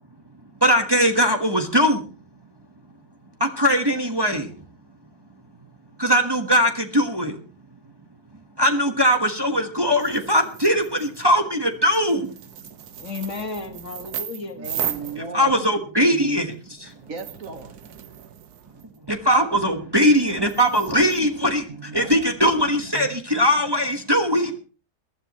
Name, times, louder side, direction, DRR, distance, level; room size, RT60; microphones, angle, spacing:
voice 1, 0.6-2.0 3.4-4.5 6.0-7.4 8.6-12.3 15.3-16.9 19.1-24.6, equal, 15° right, 4 dB, 1.3 m, -20 dB
sound 1, 10.0-11.3 11.9-15.8 16.4-19.0 20.1-21.2, right 10 dB, 75° right, 1.4 m, -36 dB
voice 2, 13.0-14.6 15.2-15.7, left 4 dB, 50° left, 6 dB, 1.9 m, -34 dB
voice 3, 14.6-15.6 17.1-17.7 21.7-22.7, right 4 dB, 60° right, 7 dB, 1.8 m, -36 dB
22.0 x 12.5 x 3.1 m, 0.35 s
omnidirectional pair, 1.7 m